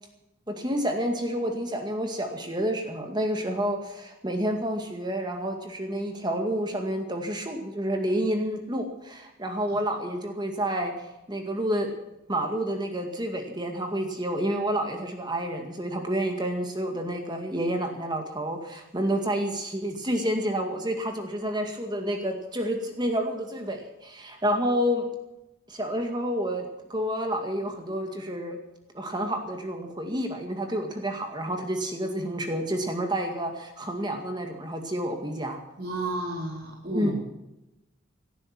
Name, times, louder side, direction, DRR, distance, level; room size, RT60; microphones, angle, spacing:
voice 1, 0.5-10.9 11.3-11.9 12.3-25.1 25.7-26.6 26.9-28.6 28.9-35.6 36.9-37.1, equal, 20° right, 4 dB, 2.1 m, -29 dB
voice 2, 35.8-37.1, right 1 dB, 50° right, -2 dB, 3.7 m, -31 dB
18.5 x 12.5 x 6.0 m, 0.94 s
head